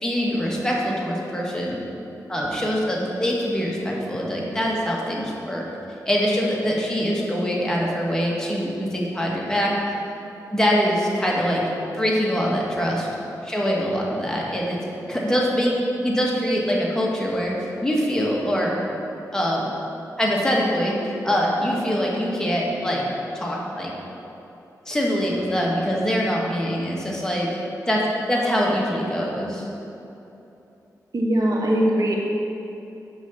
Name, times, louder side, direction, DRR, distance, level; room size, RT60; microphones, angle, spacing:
voice 1, 0.0-1.8 2.3-5.6 6.0-9.7 10.5-11.6 11.9-13.1 13.4-14.8 15.1-15.7 16.0-17.5 17.8-18.7 19.3-19.7 20.2-21.0 21.2-23.0 23.3-23.9 24.8-27.5 27.9-28.0 28.3-29.7, equal, 10° left, -3 dB, 1.6 m, -23 dB
voice 2, 31.1-32.1, right 1 dB, 55° right, -1 dB, 1.0 m, -20 dB
6.2 x 5.5 x 6.7 m, 2.9 s
cardioid pair, 60°, 7 cm